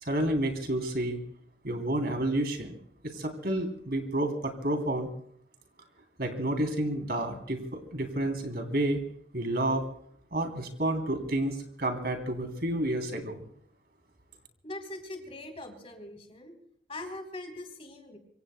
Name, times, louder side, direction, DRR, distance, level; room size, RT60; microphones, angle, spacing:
voice 1, 0.0-1.2 1.6-2.8 3.0-5.1 6.2-9.0 9.3-9.8 10.3-13.4, right 1 dB, 55° right, 5 dB, 3.2 m, -30 dB
voice 2, 14.6-16.6 16.9-18.2, left 2 dB, 30° left, 4 dB, 3.3 m, -41 dB
25.5 x 25.5 x 2.2 m, 0.67 s
head